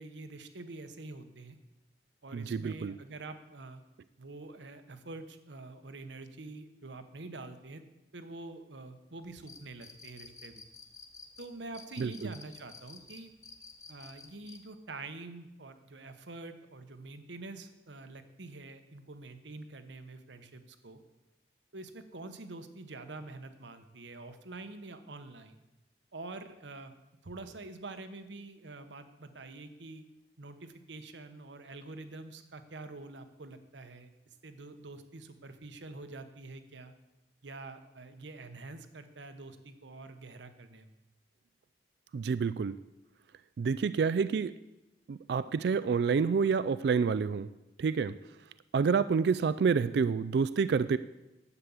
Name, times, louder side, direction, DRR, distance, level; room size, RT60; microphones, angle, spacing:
voice 1, 0.0-1.6 2.2-3.8 4.2-7.8 8.1-10.6 11.4-13.3 13.9-21.0 21.7-25.6 26.1-26.9 27.2-30.0 30.4-34.1 34.4-36.9 37.4-40.9, right 2 dB, 80° right, 9 dB, 1.1 m, -46 dB
voice 2, 2.3-2.9 12.0-12.3 42.1-42.8 43.6-44.5 45.1-47.5 47.8-48.1 48.7-51.0, right 5 dB, 65° right, 14 dB, 0.3 m, -28 dB
sound 1, 9.2-14.6, left 4 dB, 15° left, 1.2 m, -51 dB
11.0 x 8.3 x 7.2 m, 0.98 s
head